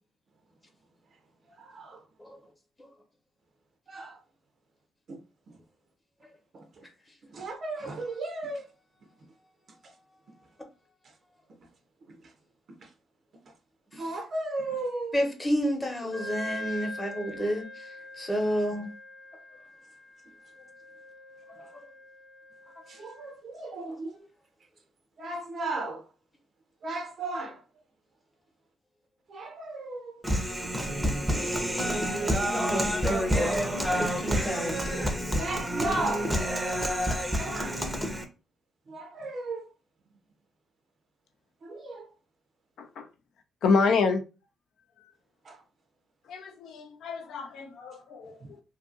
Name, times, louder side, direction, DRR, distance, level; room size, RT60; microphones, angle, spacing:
voice 1, 1.5-2.1 3.9-4.2 5.1-5.6 6.5-6.9 7.2-8.7 9.0-9.1 9.8-10.0 11.0-11.2 12.0-12.3 12.8-12.9 13.5-13.6 13.9-15.2 22.9-24.3 25.2-26.1 26.8-27.6 29.3-30.2 32.0-32.8 34.9-36.4 37.4-37.8 38.9-39.7 41.6-42.1 45.4-45.6 48.4-48.5, right 2 dB, 50° right, 0.5 m, -36 dB
voice 2, 15.1-18.9 21.5-21.9 32.7-35.4, equal, 20° left, 0.9 m, -31 dB
Wind instrument woodwind instrument, 16.1-23.4, left 2 dB, 50° left, 0.8 m, -43 dB
Human voice, 30.2-38.2, equal, 5° right, 0.6 m, -28 dB
voice 3, 43.6-44.2 46.3-48.6, left 4 dB, 70° left, 0.5 m, -28 dB
2.6 x 2.4 x 2.4 m
cardioid pair, 90°, 0 cm